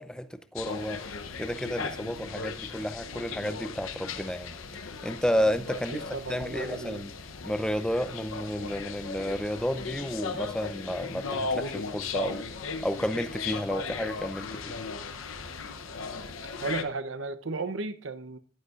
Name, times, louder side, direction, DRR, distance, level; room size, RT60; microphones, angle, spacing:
voice 1, 0.0-6.0 6.3-7.1 7.4-12.5 12.8-14.8, equal, 5° left, 0.6 m, -32 dB
sound 1, 0.6-16.8, left 4 dB, 90° left, 0.9 m, -37 dB
voice 2, 5.9-7.0 16.6-18.4, right 3 dB, 70° right, 0.8 m, -34 dB
14.5 x 10.5 x 2.5 m
head